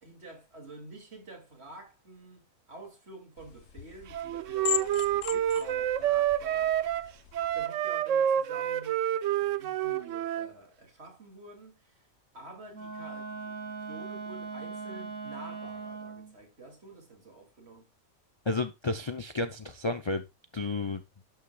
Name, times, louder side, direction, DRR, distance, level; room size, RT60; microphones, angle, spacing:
voice 1, 0.0-7.1 7.5-12.0 12.3-17.9, right 2 dB, 45° right, 2.8 m, -49 dB
sound 1, 3.4-7.6, left 11 dB, 55° left, 1.0 m, -38 dB
Wind instrument woodwind instrument, 4.1-10.5, right 11 dB, 65° right, 0.9 m, -28 dB
Wind instrument woodwind instrument 2, 12.7-16.4, right 4 dB, 80° right, 2.0 m, -40 dB
voice 2, 18.4-20.3 20.5-21.0, left 3 dB, 40° left, 0.4 m, -31 dB
11.5 x 8.8 x 2.3 m
omnidirectional pair, 1.5 m